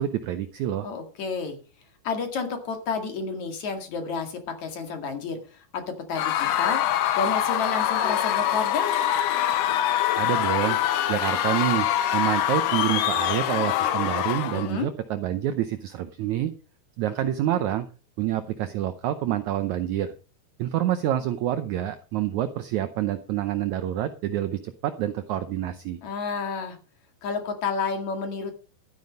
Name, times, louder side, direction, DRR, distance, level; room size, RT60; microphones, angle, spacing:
voice 1, 0.0-0.9 10.2-10.8 11.1-11.9 12.1-16.5 17.0-17.9 18.2-20.1 20.6-26.0, right 12 dB, 90° right, 11 dB, 1.6 m, -27 dB
voice 2, 0.8-1.6 2.0-5.8 6.1-6.8 7.1-8.9 14.5-14.9 26.0-26.8 27.2-28.5, left 5 dB, 55° left, 6 dB, 3.3 m, -30 dB
Screaming / Cheering / Crowd, 6.1-14.7, left 11 dB, 70° left, 2.2 m, -24 dB
13.5 x 9.5 x 5.3 m, 0.35 s
omnidirectional pair, 4.4 m